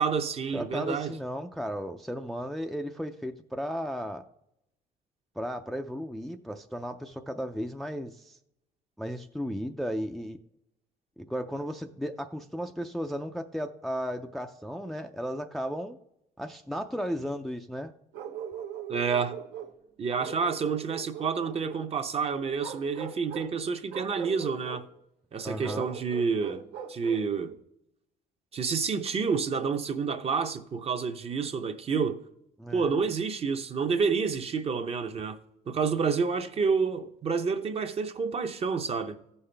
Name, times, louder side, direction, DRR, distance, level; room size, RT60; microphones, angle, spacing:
voice 1, 0.0-1.1 18.9-19.4 20.0-24.8 25.3-26.6 26.9-27.6 28.5-32.2 32.7-35.4 35.7-39.2, right 5 dB, 35° right, 0.7 m, -29 dB
voice 2, 0.5-4.3 5.4-8.4 9.0-10.4 11.3-16.0 16.4-17.9 25.4-25.9 32.6-32.9, equal, ahead, 0.4 m, -35 dB
Bark, 18.1-19.8 20.2-21.9 22.6-23.5 23.9-24.8 25.6-27.3, right 8 dB, 80° right, 1.0 m, -40 dB
14.5 x 5.6 x 3.3 m
cardioid pair, 110°, 17 cm